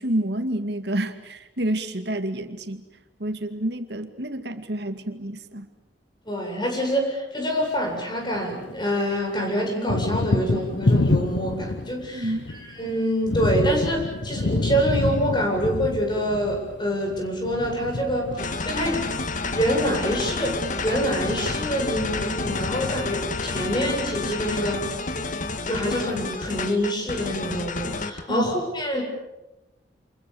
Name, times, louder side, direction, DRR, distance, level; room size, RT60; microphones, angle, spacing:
voice 1, 0.0-2.8 3.2-5.7 12.1-12.5 28.3-28.4, right 1 dB, 65° right, 8 dB, 2.3 m, -28 dB
voice 2, 6.2-19.1 19.5-24.9 25.6-29.0, equal, 25° left, 1 dB, 8.0 m, -26 dB
Thunder, 7.6-8.8 9.1-24.4, left 2 dB, 85° left, 1.0 m, -28 dB
sound 1, 18.4-28.2, left 3 dB, 45° left, 1.9 m, -30 dB
29.5 x 27.5 x 7.2 m, 1.0 s
head